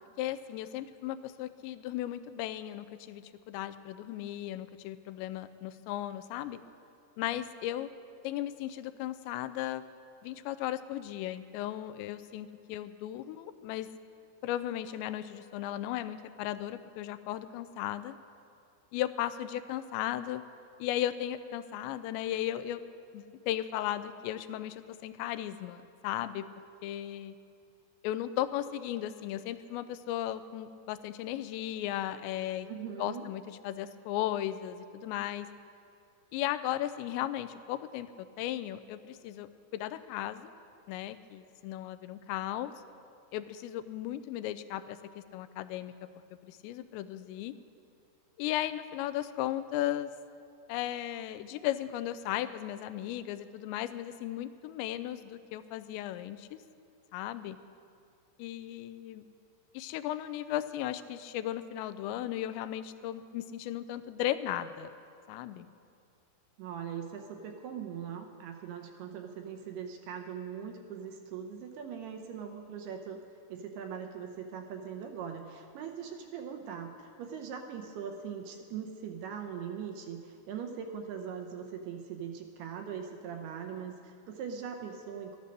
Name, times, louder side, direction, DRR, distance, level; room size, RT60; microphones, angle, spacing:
voice 1, 0.2-6.6 7.2-7.9 8.2-9.8 10.2-13.9 14.4-18.2 18.9-20.4 20.8-22.8 23.1-26.5 26.8-27.4 28.0-32.7 33.0-35.5 36.3-40.5 40.9-42.7 43.3-45.9 46.4-47.5 48.4-50.1 50.7-56.6 57.1-57.6 58.4-59.2 59.7-64.9 65.3-65.7, left 12 dB, 85° left, 11 dB, 2.8 m, -36 dB
voice 2, 32.6-33.3 66.6-73.2 73.5-85.4, right 7 dB, 80° right, 4 dB, 2.5 m, -41 dB
13.0 x 11.5 x 6.7 m, 2.4 s
omnidirectional pair, 5.1 m